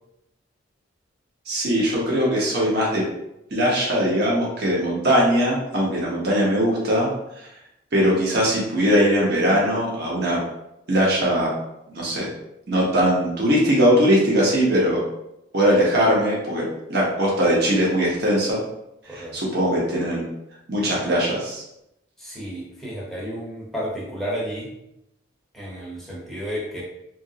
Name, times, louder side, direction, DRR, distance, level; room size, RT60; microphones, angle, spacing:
voice 1, 1.5-3.0 3.5-7.1 7.9-10.4 10.9-11.5 11.9-12.2 12.7-15.0 15.5-16.6 16.9-18.6 19.1-20.2 20.7-21.6, equal, 50° right, -4 dB, 0.8 m, -20 dB
voice 2, 19.0-19.4 22.2-24.7 25.5-26.8, equal, ahead, -5 dB, 0.7 m, -32 dB
2.9 x 2.5 x 2.7 m, 0.83 s
head